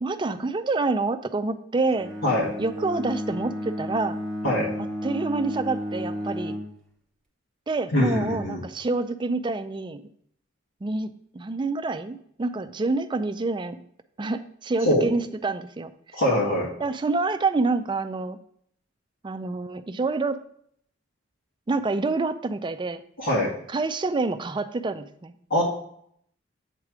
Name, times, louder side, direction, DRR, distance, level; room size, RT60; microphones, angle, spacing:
voice 1, 0.0-2.1 2.6-4.2 5.0-6.5 7.7-10.0 10.8-13.8 14.2-15.9 16.8-18.4 19.2-20.4 21.7-23.0 23.7-25.3, right 3 dB, 25° right, 9 dB, 0.4 m, -27 dB
Bowed string instrument, 1.9-6.8, equal, 5° left, 0.9 m, -32 dB
voice 2, 7.9-8.6 14.8-15.1 16.1-16.7 23.2-23.5 25.5-25.6, left 1 dB, 75° left, -7 dB, 1.8 m, -23 dB
8.2 x 3.3 x 5.9 m, 0.67 s
head